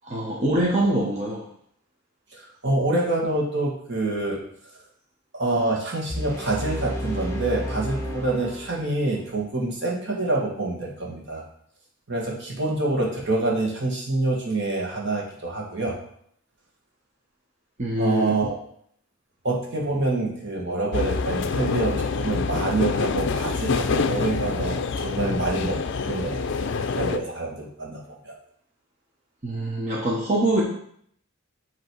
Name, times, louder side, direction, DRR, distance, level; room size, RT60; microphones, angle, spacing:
voice 1, 0.0-1.4 17.8-18.4 29.4-30.6, right 1 dB, 35° right, -4 dB, 1.0 m, -24 dB
voice 2, 2.3-4.4 5.4-11.4 12.1-16.0 18.0-18.6 19.4-28.3, right 2 dB, 55° right, -2 dB, 1.5 m, -26 dB
sound 1, 6.1-9.1, equal, 15° left, 1.0 m, -32 dB
sound 2, 20.9-27.2, left 4 dB, 55° left, 0.4 m, -26 dB
8.1 x 3.0 x 4.5 m, 0.66 s
head